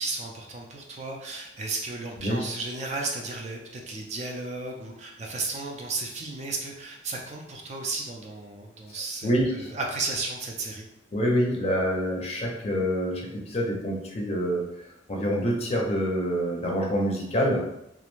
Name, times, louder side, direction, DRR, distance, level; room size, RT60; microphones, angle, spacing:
voice 1, 0.0-10.9, right 3 dB, 35° right, 0 dB, 0.4 m, -34 dB
voice 2, 9.2-9.7 11.1-14.6 15.1-17.6, equal, 35° left, -1 dB, 0.5 m, -26 dB
2.4 x 2.1 x 3.0 m, 0.81 s
head